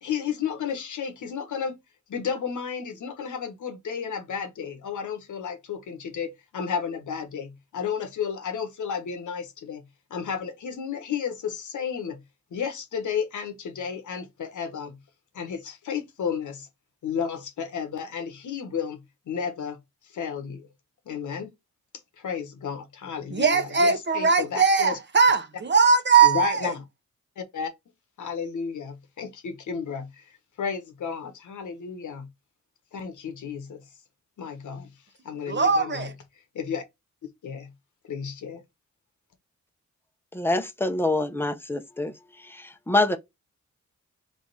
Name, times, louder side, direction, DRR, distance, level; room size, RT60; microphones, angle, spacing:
voice 1, 0.0-1.8 2.1-9.8 10.1-12.2 12.5-15.0 15.3-16.7 17.0-19.0 19.3-19.8 20.0-20.7 21.1-21.5 22.2-25.0 26.2-26.8 27.4-27.7 28.2-32.3 32.9-33.8 34.4-34.9 35.2-36.1 36.5-36.8 37.4-37.7 38.0-38.6, left 7 dB, 85° left, 1.1 m, -32 dB
voice 2, 23.3-26.7 35.5-36.1, right 5 dB, 40° right, 0.9 m, -20 dB
voice 3, 40.3-42.1 42.4-43.2, left 2 dB, 5° left, 0.8 m, -25 dB
3.6 x 3.4 x 4.0 m
cardioid pair, 95°, 29 cm